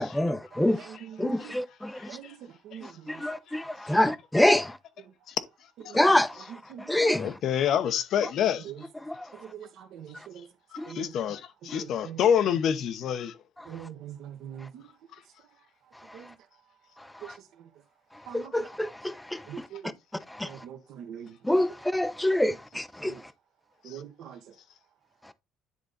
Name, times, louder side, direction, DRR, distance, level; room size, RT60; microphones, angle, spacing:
voice 1, 0.0-0.9 1.2-2.2 2.8-4.6 5.9-6.4 6.9-7.3 9.1-9.2 10.8-10.9 18.3-19.5 20.3-20.6 21.4-23.1, left 1 dB, 5° left, 0.5 m, -26 dB
voice 2, 0.6-1.5 2.1-3.2 5.9-6.0 6.5-7.2 8.6-8.8 9.4-10.4 10.8-11.1 11.7-12.2 13.7-14.9 16.1-16.3 18.3-18.7 19.5-19.9 20.4-21.4 22.5-22.6 23.0-23.2 23.8-24.4, right 9 dB, 60° right, 1.2 m, -43 dB
voice 3, 2.0-2.3 2.7-2.8 3.9-4.0 5.8-6.2 7.0-8.7 10.7-13.4 23.9-24.0, left 9 dB, 50° left, 0.9 m, -28 dB
10.0 x 3.9 x 4.0 m
cardioid pair, 160°, 0 cm